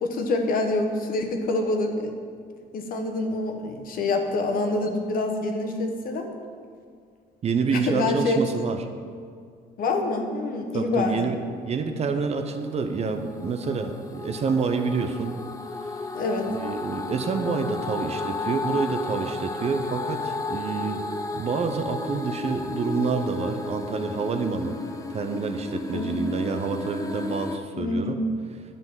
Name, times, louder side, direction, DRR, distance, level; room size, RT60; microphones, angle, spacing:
voice 1, 0.0-2.1 2.7-6.3 7.7-8.7 9.8-11.3 16.1-16.5 25.9-26.1 27.8-28.2, left 2 dB, 55° left, 3 dB, 1.2 m, -26 dB
voice 2, 7.4-8.8 10.7-11.4 11.6-15.3 15.8-16.0 16.5-21.0 21.3-24.8 25.1-28.2, right 5 dB, 40° right, 6 dB, 0.7 m, -28 dB
sound 1, 12.4-27.6, left 3 dB, 20° left, 0.6 m, -33 dB
10.5 x 4.0 x 7.3 m, 2.2 s
cardioid pair, 110°, 17 cm